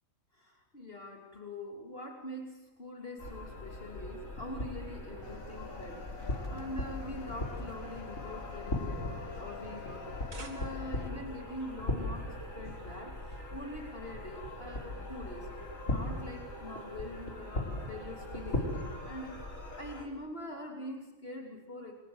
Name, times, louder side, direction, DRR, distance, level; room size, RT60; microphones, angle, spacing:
voice 1, 0.3-10.0 10.3-15.5 15.9-19.4 19.8-21.9, left 1 dB, 45° left, 1 dB, 3.2 m, -44 dB
sound 1, 3.2-20.0, left 1 dB, 70° left, 4.8 m, -39 dB
sound 2, 5.2-11.1, left 5 dB, 90° left, 1.9 m, -48 dB
sound 3, 10.0-11.1, right 3 dB, 80° right, 2.7 m, -51 dB
29.5 x 22.5 x 8.0 m, 1.0 s
omnidirectional pair, 1.4 m